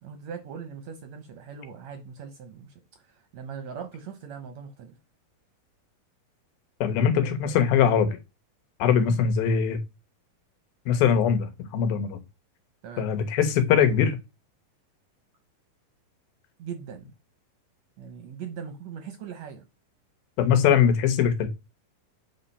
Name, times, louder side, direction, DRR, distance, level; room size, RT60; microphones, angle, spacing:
voice 1, 0.0-5.0 12.8-13.1 16.6-17.1 18.0-19.6, right 7 dB, 70° right, 1.8 m, -40 dB
voice 2, 6.8-8.2 8.8-9.8 10.9-12.2 13.0-14.2 20.4-21.5, left 7 dB, 85° left, 2.9 m, -22 dB
7.5 x 4.2 x 5.4 m
omnidirectional pair, 4.1 m